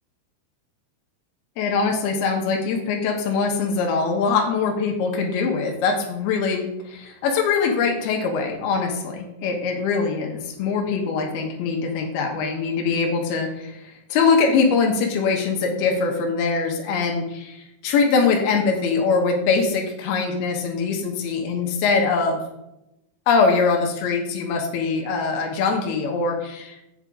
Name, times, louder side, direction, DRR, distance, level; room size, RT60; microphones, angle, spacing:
voice 1, 1.6-22.4 23.3-26.8, left 4 dB, 75° left, 1 dB, 3.0 m, -22 dB
8.8 x 7.0 x 3.7 m, 0.87 s
omnidirectional pair, 4.8 m